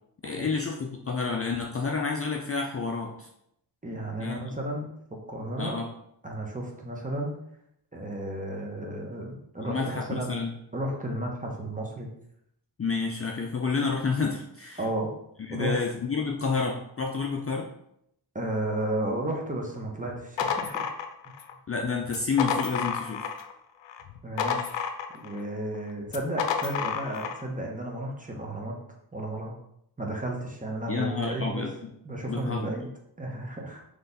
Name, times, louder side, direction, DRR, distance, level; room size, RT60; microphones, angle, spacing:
voice 1, 0.2-3.3 4.2-4.4 5.6-5.9 9.7-10.5 12.8-14.8 15.5-17.7 21.7-23.3 30.9-31.9 32.3-32.7, left 4 dB, 30° left, 1 dB, 0.5 m, -29 dB
voice 2, 3.8-5.8 6.2-7.4 7.9-10.3 10.7-12.1 14.8-15.1 15.5-15.8 18.3-20.8 24.2-24.8 25.1-28.8 29.1-29.6 30.0-31.6 32.0-32.9 33.2-33.8, right 1 dB, 20° right, 0 dB, 1.1 m, -33 dB
sound 1, 20.1-21.5 22.1-23.5 23.9-25.4 26.1-27.4, left 7 dB, 75° left, 0.6 m, -31 dB
3.9 x 3.3 x 4.0 m, 0.76 s
cardioid pair, 85°, 44 cm